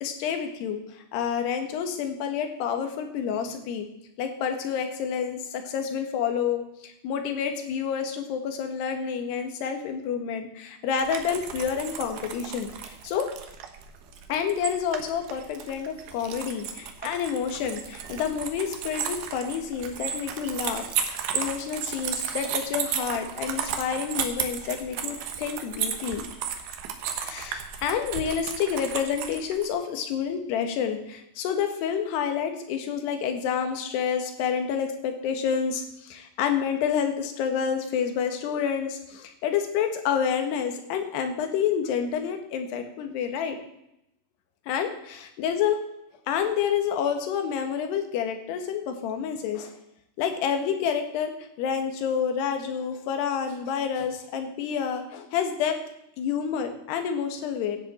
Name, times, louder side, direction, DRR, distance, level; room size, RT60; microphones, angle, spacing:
voice 1, 0.0-3.9 4.2-13.3 14.3-16.7 17.0-26.2 27.2-43.6 44.7-45.8 46.3-49.7 50.2-55.8 56.2-57.8, left 7 dB, 75° left, 6 dB, 3.4 m, -29 dB
sound 1, 11.0-29.7, right 8 dB, 70° right, 2.8 m, -34 dB
16.0 x 10.0 x 4.3 m, 0.81 s
omnidirectional pair, 5.0 m